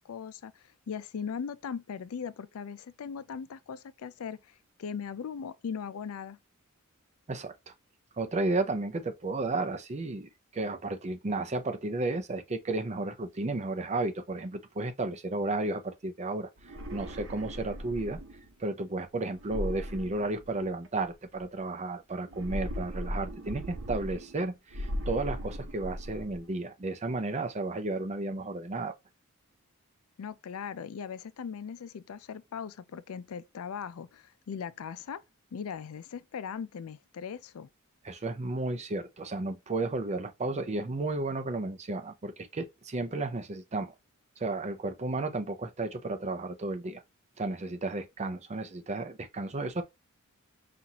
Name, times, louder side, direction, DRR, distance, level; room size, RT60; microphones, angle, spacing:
voice 1, 0.0-6.4 30.2-35.2 35.5-37.7, left 6 dB, 75° left, 0.4 m, -39 dB
voice 2, 8.2-18.2 18.6-28.9 38.0-43.9 44.4-47.0 47.4-49.8, right 2 dB, 30° right, 0.5 m, -33 dB
sound 1, 16.6-18.5 19.4-20.9 22.3-24.4 24.7-26.4, equal, 65° right, 0.9 m, -38 dB
5.6 x 2.5 x 2.9 m
head